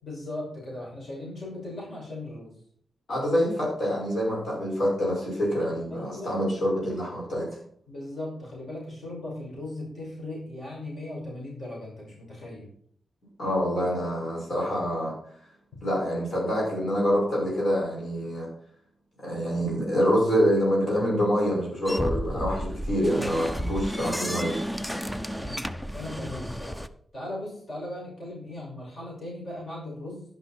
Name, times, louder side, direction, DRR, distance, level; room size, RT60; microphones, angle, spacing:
voice 1, 0.0-2.5 5.9-6.3 7.9-12.7 25.4-25.7 25.9-26.8 27.1-30.2, left 1 dB, 35° left, -4 dB, 6.1 m, -38 dB
voice 2, 3.1-7.5 13.4-15.1 15.8-18.5 19.2-24.6, equal, 55° left, -4 dB, 5.9 m, -26 dB
sound 1, 21.9-26.9, equal, 5° left, 0.5 m, -32 dB
11.5 x 10.5 x 4.4 m, 0.62 s
wide cardioid pair, 180°, 0 cm